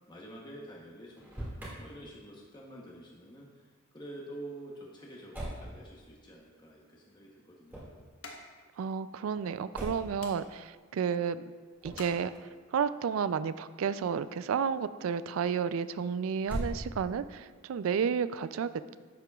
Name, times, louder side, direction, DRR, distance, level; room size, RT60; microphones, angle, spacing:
voice 1, 0.1-1.5 1.8-3.7 3.9-7.9, right 1 dB, 20° left, -3 dB, 0.9 m, -48 dB
Motor vehicle (road), 1.2-1.8 5.3-5.7 7.6-8.0 9.7-10.2 11.8-12.1 16.4-17.2, right 1 dB, 10° right, 2.0 m, -39 dB
sound 1, 6.5-12.8, left 3 dB, 80° left, 1.1 m, -54 dB
voice 2, 8.8-11.5 11.8-12.3 12.7-19.0, right 7 dB, 85° right, 14 dB, 0.3 m, -31 dB
10.5 x 8.0 x 2.3 m, 1.5 s
head